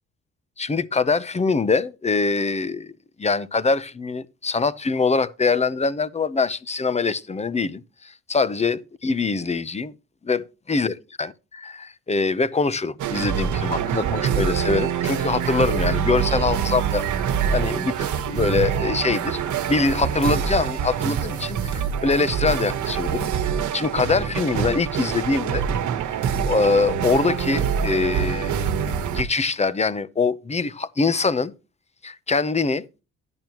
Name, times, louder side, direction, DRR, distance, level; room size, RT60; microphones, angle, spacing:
voice 1, 0.6-2.9 3.2-9.9 10.2-10.4 10.7-17.2 17.5-19.4 19.7-23.3 23.7-25.7 26.1-28.6 29.1-31.5 32.0-32.8, left 4 dB, 20° left, 0.7 m, -23 dB
Aw Snap Synchronicity, 13.0-29.2, right 8 dB, 75° right, 1.3 m, -25 dB
10.5 x 10.5 x 3.0 m
cardioid pair, 90°, 30 cm